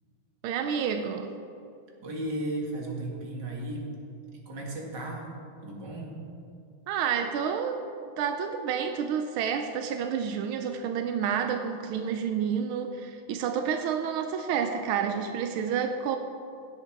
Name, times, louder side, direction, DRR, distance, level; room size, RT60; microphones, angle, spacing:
voice 1, 0.4-1.4 6.9-7.8 8.2-16.2, right 7 dB, 90° right, 7 dB, 1.5 m, -29 dB
voice 2, 2.0-3.9 4.5-5.3 5.6-6.2, right 1 dB, 55° right, -1 dB, 2.5 m, -35 dB
17.5 x 7.8 x 4.6 m, 2.5 s
omnidirectional pair, 2.3 m